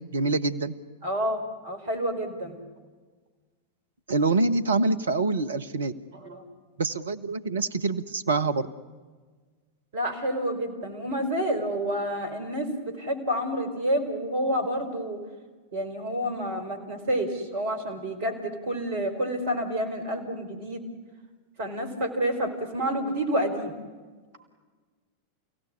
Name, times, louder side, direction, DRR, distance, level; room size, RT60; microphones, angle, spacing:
voice 1, 0.1-0.7 4.1-5.9 6.8-8.7, right 3 dB, 70° right, 13 dB, 1.3 m, -25 dB
voice 2, 1.0-2.6 6.1-6.4 9.9-15.2 15.7-20.8 21.6-23.7, equal, 55° right, 7 dB, 4.8 m, -29 dB
29.5 x 17.0 x 9.8 m, 1.4 s
figure-of-eight pair, 90°, 0 cm